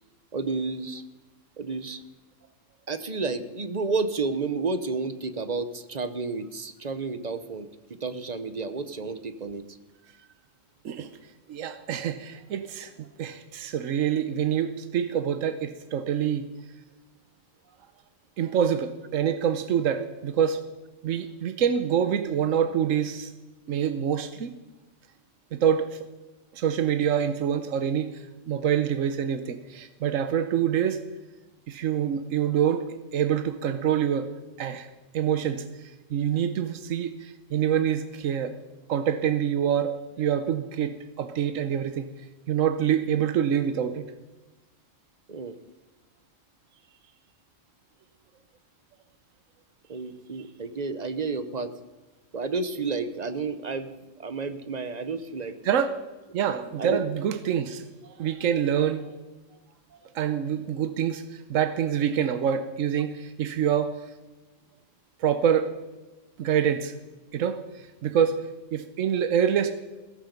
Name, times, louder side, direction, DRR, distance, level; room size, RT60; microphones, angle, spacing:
voice 1, 0.3-1.0 1.6-2.0 2.9-7.7 8.0-9.6 45.3-45.6 49.9-51.7 52.3-53.9 54.2-55.6 56.8-57.0, right 4 dB, 35° right, 12 dB, 0.9 m, -31 dB
voice 2, 11.5-16.5 18.4-20.6 21.0-23.3 23.7-24.5 25.5-26.1 26.5-31.0 31.7-34.3 34.6-38.6 38.9-42.1 42.5-44.1 55.6-56.0 56.3-59.1 60.1-64.0 65.2-65.7 66.4-66.9 67.3-69.7, right 8 dB, 85° right, 10 dB, 1.2 m, -26 dB
16.5 x 14.0 x 5.3 m, 1.1 s
omnidirectional pair, 1.3 m